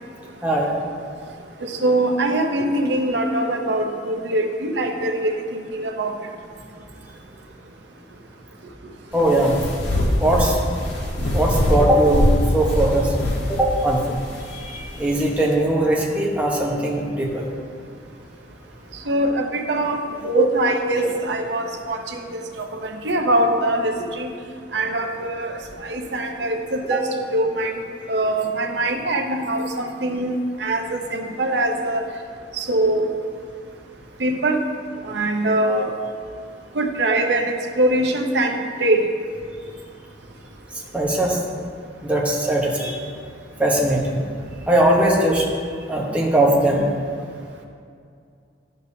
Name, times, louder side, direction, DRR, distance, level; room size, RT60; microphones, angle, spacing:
voice 1, 1.6-6.1 19.1-20.0 20.2-22.2 22.6-22.7 23.0-24.3 24.7-25.6 25.8-27.0 27.3-27.7 28.1-32.0 32.6-33.1 34.2-34.6 35.1-35.9 36.8-39.0, right 1 dB, 75° right, 3 dB, 0.8 m, -22 dB
sound 1, 9.1-15.5, equal, 90° left, 1.4 m, -23 dB
voice 2, 9.1-9.5 10.2-10.6 11.3-12.3 12.5-13.1 13.5-14.2 14.6-17.4 20.4-20.5 26.9-27.0 40.9-41.4 42.0-43.0 43.6-44.2 44.7-45.5 45.9-46.8, right 1 dB, 10° right, -3 dB, 1.1 m, -20 dB
11.5 x 6.8 x 2.8 m, 2.3 s
head